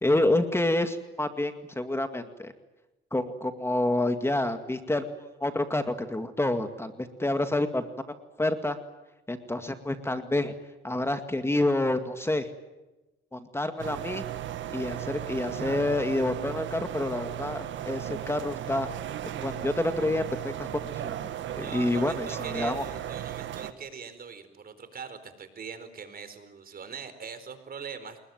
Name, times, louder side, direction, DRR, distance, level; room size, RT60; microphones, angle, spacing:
voice 1, 0.0-2.5 3.1-8.1 8.4-8.8 9.3-10.5 10.8-12.5 13.3-14.2 14.7-18.9 19.4-21.3 21.6-22.8, left 1 dB, 10° left, 8 dB, 2.0 m, -28 dB
sound 1, 13.8-23.7, right 11 dB, 70° right, 1.9 m, -36 dB
voice 2, 21.6-28.3, right 6 dB, 50° right, 10 dB, 4.4 m, -42 dB
28.5 x 21.0 x 9.4 m, 1.0 s
cardioid pair, 90°, 20 cm